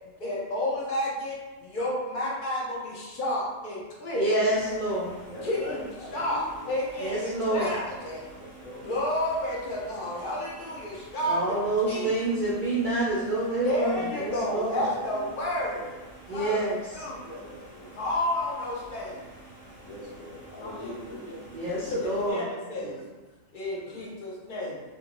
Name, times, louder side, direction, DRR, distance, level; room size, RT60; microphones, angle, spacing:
voice 1, 0.2-4.4 5.4-8.2 8.8-11.6 11.9-12.1 13.6-16.0 16.3-17.4 17.9-19.3 20.6-23.0 23.5-24.8, left 1 dB, 55° left, -4 dB, 0.6 m, -31 dB
voice 2, 4.1-5.2 7.0-7.7 11.3-14.8 16.3-17.0 21.5-22.4, right 2 dB, 65° right, -7 dB, 0.5 m, -27 dB
sound 1, 4.4-22.3, right 2 dB, 35° left, 1.0 m, -49 dB
voice 3, 5.3-6.7 8.4-8.9 13.6-14.0 14.6-15.5 17.3-18.0 19.8-21.5 22.7-23.0 23.8-24.0, left 1 dB, 85° left, -2 dB, 1.1 m, -43 dB
2.5 x 2.5 x 2.8 m, 1.2 s
omnidirectional pair, 1.4 m